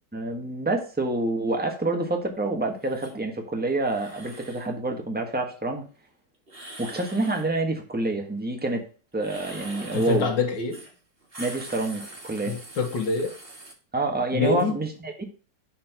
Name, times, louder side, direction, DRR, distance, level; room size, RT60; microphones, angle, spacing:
voice 1, 0.1-5.8 6.8-8.8 9.1-10.3 11.4-12.6 13.9-15.2, right 2 dB, 5° right, 3 dB, 1.2 m, -27 dB
sound 1, 2.8-3.1 3.8-4.7 6.5-7.5 9.2-10.3 10.7-10.9 11.2-13.7, right 2 dB, 35° right, 1.9 m, -42 dB
voice 2, 9.9-10.8 12.5-13.3 14.3-14.7, left 4 dB, 80° left, 2 dB, 2.0 m, -26 dB
6.3 x 4.5 x 5.8 m, 0.38 s
omnidirectional pair, 1.9 m